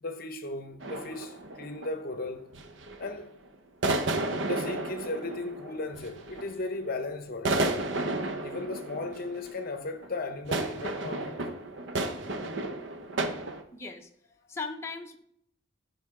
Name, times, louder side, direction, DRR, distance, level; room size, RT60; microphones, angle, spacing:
voice 1, 0.0-2.5 3.0-3.4 4.4-7.9 8.4-11.3, left 2 dB, 45° left, 0.8 m, -36 dB
sound 1, 0.8-2.1 2.5-3.1 3.8-6.8 7.3-13.6, right 2 dB, 60° right, 0.9 m, -32 dB
voice 2, 13.7-14.1 14.5-15.2, left 4 dB, 15° left, 0.8 m, -37 dB
15.5 x 5.2 x 3.7 m
head